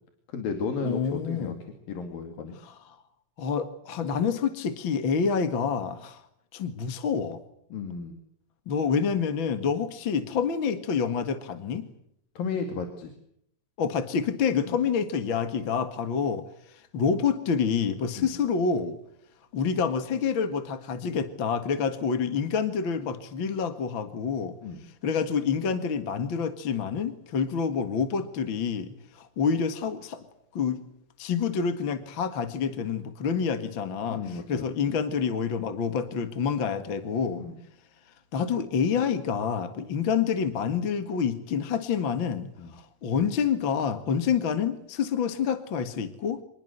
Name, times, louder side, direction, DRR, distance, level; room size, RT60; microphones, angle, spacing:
voice 1, 0.3-1.5 1.9-2.6 7.7-8.2 12.4-13.1 14.7-14.8 18.2-18.3 24.6-24.8 34.1-34.9 37.4-37.6 42.6-42.7, left 5 dB, 85° left, 6 dB, 4.1 m, -34 dB
voice 2, 0.8-1.6 2.6-2.8 3.4-6.2 6.5-7.4 8.7-11.9 13.8-19.0 19.5-24.6 25.0-30.2 30.5-30.8 31.2-37.4 38.3-46.4, left 6 dB, 45° left, 9 dB, 2.0 m, -27 dB
26.0 x 21.5 x 8.0 m, 0.72 s
omnidirectional pair, 4.0 m